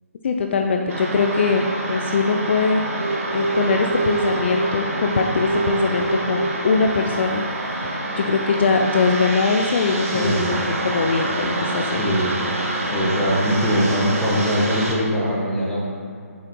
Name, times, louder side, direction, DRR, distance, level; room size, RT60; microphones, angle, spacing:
voice 1, 0.2-2.8 3.3-10.6 10.8-12.0, left 4 dB, 45° left, 3 dB, 0.6 m, -22 dB
sound 1, 0.9-14.9, right 2 dB, 65° right, 2.3 m, -26 dB
voice 2, 10.0-10.7 11.9-15.8, equal, 5° left, -8 dB, 1.7 m, -22 dB
7.6 x 7.1 x 4.7 m, 2.3 s
figure-of-eight pair, 150°, 8 cm